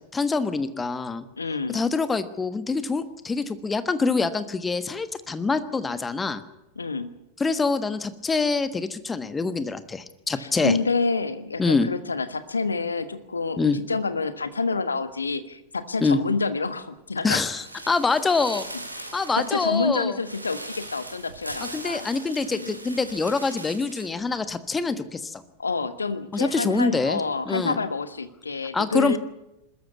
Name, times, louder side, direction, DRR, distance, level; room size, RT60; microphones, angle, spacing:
voice 1, 0.1-1.2 1.7-6.4 7.4-10.8 11.6-11.9 13.6-13.8 16.0-16.2 17.2-18.7 19.1-20.2 21.7-25.4 26.3-27.8 28.7-29.2, left 4 dB, 15° left, 13 dB, 1.4 m, -25 dB
voice 2, 1.4-1.8 6.8-7.1 10.3-17.4 19.0-19.1 19.4-22.1 22.4-22.8 25.6-29.2, left 4 dB, 75° left, 12 dB, 1.4 m, -28 dB
sound 1, 17.5-24.2 24.5-24.6, right 1 dB, 85° right, 2.7 m, -40 dB
21.5 x 13.5 x 9.5 m, 0.90 s
figure-of-eight pair, 90°, 0 cm